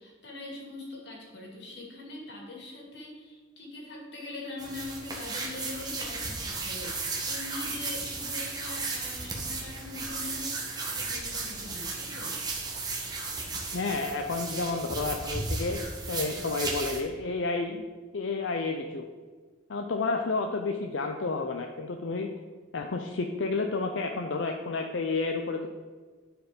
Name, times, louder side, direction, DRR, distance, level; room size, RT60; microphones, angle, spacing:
voice 1, 0.0-12.4, left 2 dB, 60° left, -1 dB, 2.5 m, -42 dB
sound 1, 4.6-17.0, right 3 dB, 20° right, 1.5 m, -35 dB
voice 2, 13.7-17.8 18.1-19.1 19.7-22.3 22.7-25.7, left 3 dB, 85° left, 4 dB, 0.6 m, -30 dB
11.0 x 4.8 x 5.2 m, 1.5 s
head